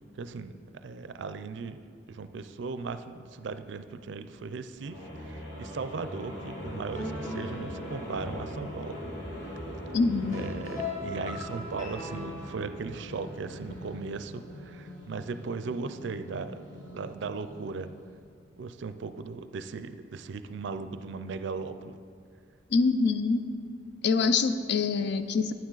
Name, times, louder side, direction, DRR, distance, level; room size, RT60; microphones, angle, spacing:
voice 1, 0.1-0.5 0.8-9.0 10.3-18.0 18.6-22.0, right 4 dB, 65° right, 11 dB, 0.4 m, -37 dB
sound 1, 4.8-18.0, equal, 90° left, 2.4 m, -41 dB
sound 2, 6.6-12.7, left 2 dB, 40° left, 1.9 m, -40 dB
voice 2, 9.9-10.4 22.7-23.4 24.0-25.5, left 4 dB, 60° left, 10 dB, 0.5 m, -25 dB
9.3 x 8.8 x 3.9 m, 2.3 s
head